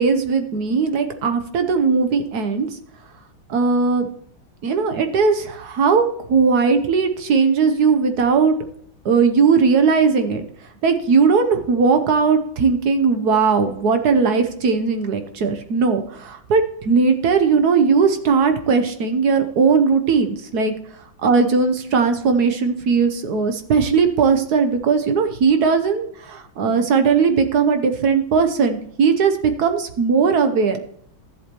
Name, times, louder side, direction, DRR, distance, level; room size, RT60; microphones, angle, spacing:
voice 1, 0.0-2.7 3.5-4.1 4.6-6.0 6.3-8.5 9.0-10.4 10.8-20.7 21.2-30.8, right 5 dB, 60° right, 8 dB, 1.2 m, -18 dB
13.5 x 7.8 x 3.0 m, 0.65 s
omnidirectional pair, 2.1 m